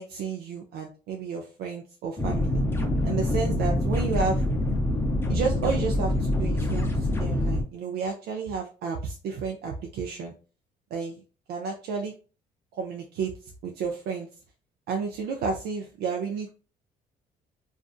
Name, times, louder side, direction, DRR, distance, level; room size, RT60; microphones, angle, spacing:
voice 1, 0.0-2.6 3.0-4.4 5.3-10.3 10.9-11.2 11.5-12.1 12.7-13.3 13.6-14.3 14.9-16.5, right 5 dB, 75° right, 1 dB, 0.5 m, -31 dB
sound 1, 2.2-7.6, left 1 dB, 15° left, 0.6 m, -25 dB
2.5 x 2.5 x 2.3 m, 0.35 s
cardioid pair, 110°, 17 cm